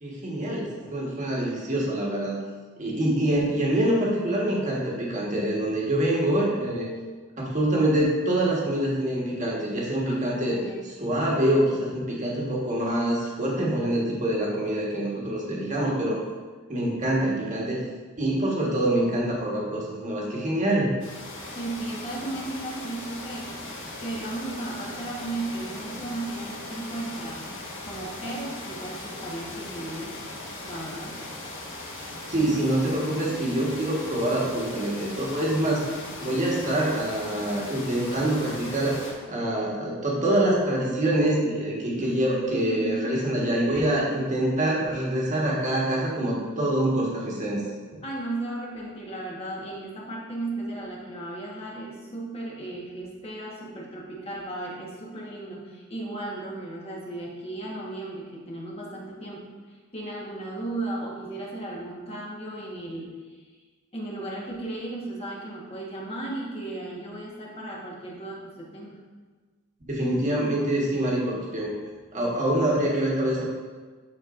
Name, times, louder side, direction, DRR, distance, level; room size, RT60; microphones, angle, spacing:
voice 1, 0.0-2.4 2.8-6.9 7.4-10.6 11.0-16.2 16.7-17.8 18.2-20.9 32.3-35.8 36.2-39.0 39.3-47.6 47.9-48.0 69.9-71.7 72.1-73.4, right 1 dB, 35° right, -4 dB, 1.5 m, -25 dB
voice 2, 10.0-10.9 15.4-15.6 21.5-23.5 24.0-27.4 27.8-30.2 30.6-31.2 42.0-42.1 42.5-43.1 48.0-59.4 59.7-63.4 63.9-69.0, right 2 dB, 25° left, -4 dB, 1.4 m, -35 dB
sound 1, 21.0-39.1, left 2 dB, 60° left, 1.4 m, -39 dB
11.5 x 4.2 x 2.6 m, 1.4 s
head